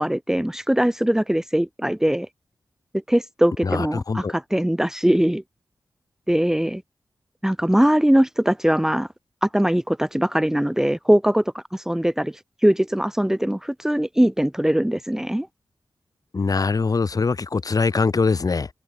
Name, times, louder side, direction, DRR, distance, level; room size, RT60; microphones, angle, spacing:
voice 1, 0.0-2.3 3.1-5.4 6.3-6.8 7.4-9.1 9.4-11.4 11.7-12.3 12.6-15.5, equal, 5° right, 1.3 m, -21 dB
voice 2, 3.6-4.3 16.3-18.7, left 4 dB, 55° left, 4.9 m, -22 dB
wide cardioid pair, 80°, 8 cm